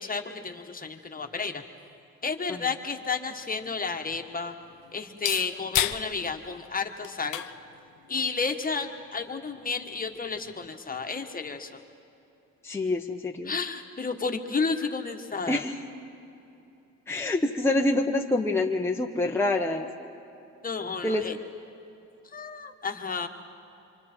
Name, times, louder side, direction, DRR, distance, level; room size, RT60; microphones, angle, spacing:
voice 1, 0.0-1.6 2.2-4.5 4.9-7.4 8.1-11.8 13.4-15.6 20.6-21.4 22.3-23.3, left 4 dB, 30° left, 5 dB, 1.5 m, -32 dB
sound 1, 2.7-10.7, left 13 dB, 85° left, 0.8 m, -37 dB
voice 2, 12.6-13.5 15.5-15.7 17.1-19.9 21.0-21.2, left 2 dB, 10° left, 0 dB, 1.1 m, -26 dB
27.5 x 25.5 x 4.5 m, 2.9 s
cardioid pair, 90°, 30 cm